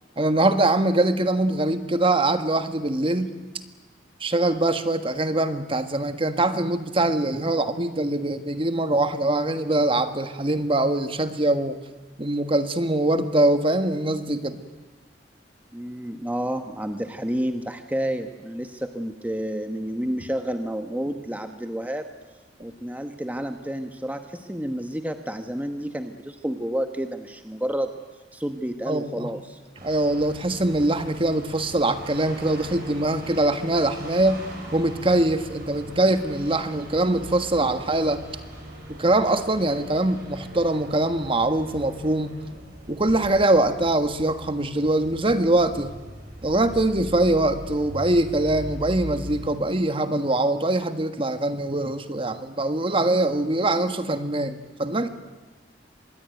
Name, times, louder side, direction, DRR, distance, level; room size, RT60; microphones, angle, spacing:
voice 1, 0.2-3.3 4.2-11.8 12.2-14.6 28.9-29.3 29.8-34.5 34.7-38.2 38.9-42.3 42.9-45.9 46.4-55.1, right 2 dB, 30° right, 9 dB, 1.5 m, -23 dB
voice 2, 15.7-22.1 22.6-27.9 28.3-29.6, equal, 10° right, 7 dB, 1.1 m, -30 dB
sound 1, 29.7-49.6, right 1 dB, 55° right, 7.4 m, -40 dB
25.5 x 21.0 x 9.3 m, 1.2 s
head